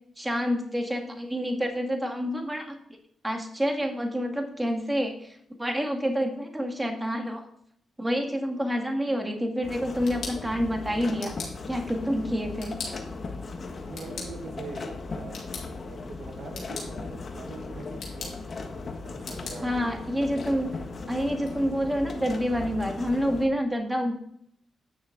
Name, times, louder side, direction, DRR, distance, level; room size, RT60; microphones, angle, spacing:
voice 1, 0.2-2.8 3.2-7.5 8.0-11.4 11.7-12.7 19.6-20.8 21.1-24.2, equal, 10° right, 3 dB, 1.9 m, -28 dB
sound 1, 9.6-23.5, left 3 dB, 50° left, 1.5 m, -38 dB
sound 2, 9.8-21.5, left 4 dB, 75° left, 2.7 m, -44 dB
voice 2, 13.9-15.4 15.8-18.4 19.0-20.0, right 4 dB, 75° right, 4 dB, 1.3 m, -43 dB
9.6 x 6.4 x 3.9 m, 0.69 s
cardioid pair, 65°, 0 cm